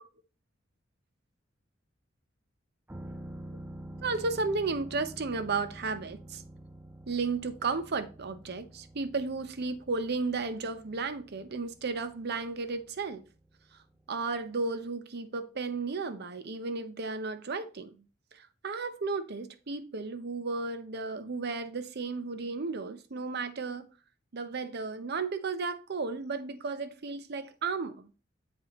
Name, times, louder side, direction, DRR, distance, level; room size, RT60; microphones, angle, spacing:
sound 1, 2.9-14.5 14.8-14.9, right 1 dB, 10° right, 0.4 m, -48 dB
voice 1, 4.0-6.4 7.1-13.2 14.1-18.0 18.3-23.9 24.3-28.1, right 4 dB, 55° right, 0.7 m, -34 dB
7.5 x 5.0 x 2.9 m
head